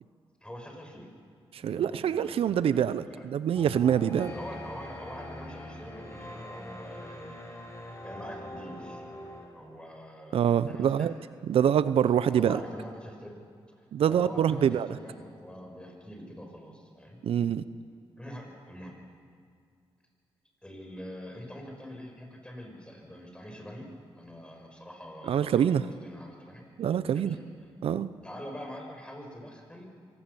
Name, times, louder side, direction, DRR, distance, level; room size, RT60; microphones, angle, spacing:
voice 1, 0.4-1.1 1.6-3.3 4.1-7.6 8.0-9.0 9.5-11.2 12.1-13.3 13.8-17.2 18.2-19.0 20.6-23.9 24.2-26.7 27.1-27.7 28.2-29.9, equal, 10° left, 2 dB, 6.1 m, -44 dB
voice 2, 1.5-4.3 10.3-11.1 11.5-12.6 13.9-14.9 17.2-17.6 25.3-25.9 26.8-27.4 27.8-28.1, right 9 dB, 80° right, 14 dB, 0.6 m, -25 dB
sound 1, 3.6-9.5, left 1 dB, 30° left, 6.3 m, -43 dB
24.5 x 18.0 x 7.0 m, 2.2 s
cardioid pair, 60°, 10 cm